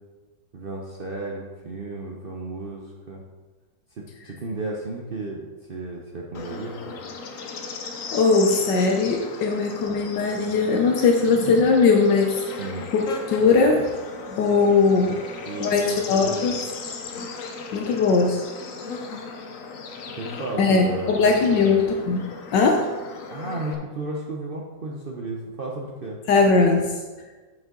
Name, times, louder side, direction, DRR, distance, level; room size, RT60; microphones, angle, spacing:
voice 1, 0.5-3.2 4.0-7.0 12.6-12.9 15.4-16.6 20.1-21.7 23.3-26.2, right 2 dB, 75° right, -1 dB, 0.5 m, -34 dB
Bird / Insect, 6.3-23.7, left 4 dB, 60° left, 1.0 m, -36 dB
voice 2, 8.1-12.6 12.9-13.9 14.3-15.2 15.6-16.6 17.7-18.4 20.6-22.3 22.5-22.9 26.3-26.9, left 4 dB, 75° left, 2 dB, 1.3 m, -20 dB
7.9 x 5.5 x 3.8 m, 1.3 s
omnidirectional pair, 2.0 m